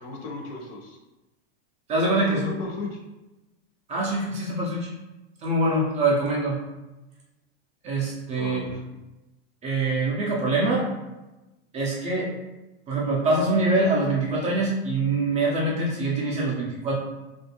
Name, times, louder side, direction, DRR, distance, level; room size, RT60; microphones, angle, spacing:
voice 1, 0.0-1.0 2.2-3.0 8.3-8.8, left 3 dB, 60° left, 0 dB, 0.7 m, -36 dB
voice 2, 1.9-2.5 3.9-4.9 5.4-6.6 7.8-8.8 9.6-10.8 11.7-12.3 12.9-17.0, right 2 dB, 20° right, -4 dB, 0.4 m, -24 dB
2.4 x 2.1 x 2.8 m, 1.0 s
supercardioid pair, 135°, 32 cm